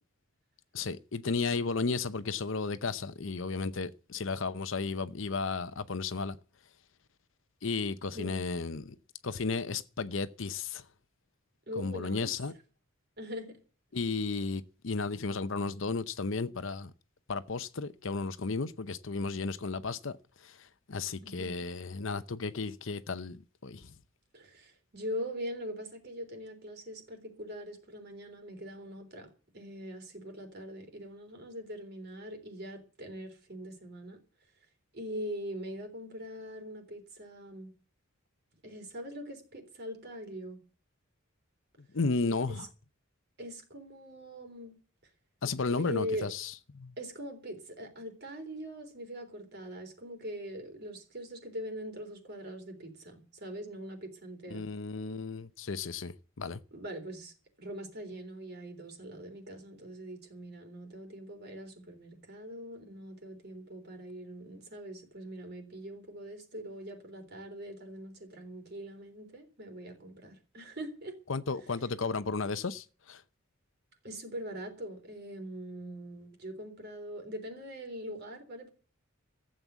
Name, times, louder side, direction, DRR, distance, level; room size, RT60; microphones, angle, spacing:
voice 1, 0.7-6.4 7.6-9.0 9.2-10.8 11.8-12.5 13.9-16.9 17.3-20.2 20.4-20.6 20.9-23.9 41.9-42.6 45.4-46.9 54.5-56.6 71.3-73.2, left 4 dB, 65° left, 0.8 m, -34 dB
voice 2, 8.1-8.6 11.7-12.3 13.2-13.6 21.2-21.5 24.3-34.2 34.9-37.7 38.6-40.6 42.5-42.7 43.4-44.7 45.8-46.3 47.0-54.7 56.7-57.3 57.6-71.2 74.0-78.7, equal, 50° right, 3.7 m, -42 dB
14.5 x 7.8 x 8.2 m
head